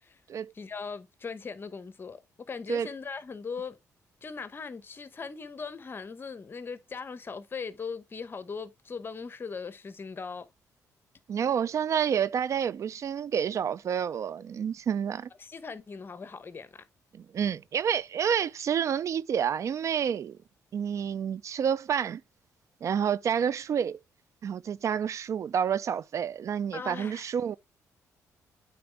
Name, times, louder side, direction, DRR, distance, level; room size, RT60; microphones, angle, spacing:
voice 1, 0.5-3.8 4.2-10.5 15.4-16.8 26.7-27.3, left 5 dB, 35° left, 1.0 m, -39 dB
voice 2, 11.3-15.3 17.1-20.4 20.7-22.2 22.8-24.0 24.4-27.6, right 8 dB, 55° right, 0.4 m, -29 dB
8.6 x 4.0 x 3.4 m
cardioid pair, 90°, 6 cm